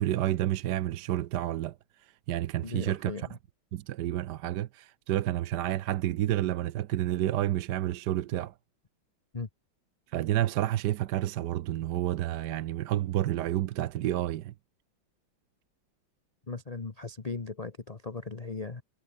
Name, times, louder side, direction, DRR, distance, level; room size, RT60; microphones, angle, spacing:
voice 1, 0.0-1.8 2.3-3.1 3.7-8.5 10.1-14.5, right 13 dB, 65° right, 1.2 m, -29 dB
voice 2, 2.6-3.4 9.3-9.5 16.5-18.8, left 4 dB, 25° left, 1.0 m, -38 dB
omnidirectional pair, 2.1 m